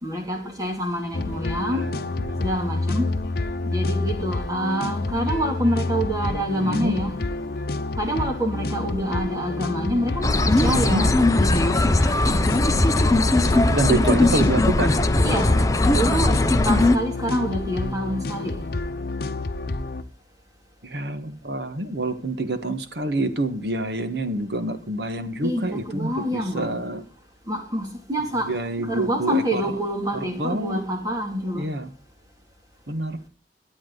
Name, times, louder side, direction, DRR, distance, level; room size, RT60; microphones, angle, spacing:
voice 1, 0.0-2.0 2.4-3.1 3.6-7.2 8.0-11.1 11.3-11.9 15.2-15.5 15.9-16.3 16.6-18.5 25.4-26.7 27.5-28.5 28.8-31.7, equal, 20° right, 2.7 m, -26 dB
sound 1, 1.1-20.0, left 2 dB, 60° left, 0.9 m, -29 dB
voice 2, 1.7-2.4 6.6-7.0 10.7-11.0 13.7-14.9 20.8-27.0 28.4-29.6 30.1-30.8 31.5-31.9 32.9-33.2, right 2 dB, 70° right, 1.5 m, -27 dB
sound 2, 10.2-17.0, left 2 dB, 20° left, 0.7 m, -19 dB
22.0 x 8.8 x 4.0 m
head